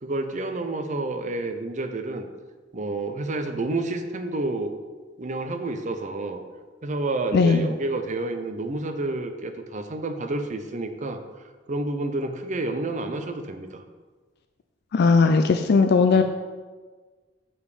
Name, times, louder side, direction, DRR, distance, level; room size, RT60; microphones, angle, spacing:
voice 1, 0.0-2.3 2.7-4.7 5.2-6.4 6.8-11.2 11.7-13.8 16.1-16.2, right 2 dB, 40° right, 7 dB, 0.6 m, -29 dB
voice 2, 7.3-7.7 14.9-16.2, left 4 dB, 60° left, 7 dB, 0.4 m, -18 dB
7.2 x 5.2 x 4.9 m, 1.4 s
head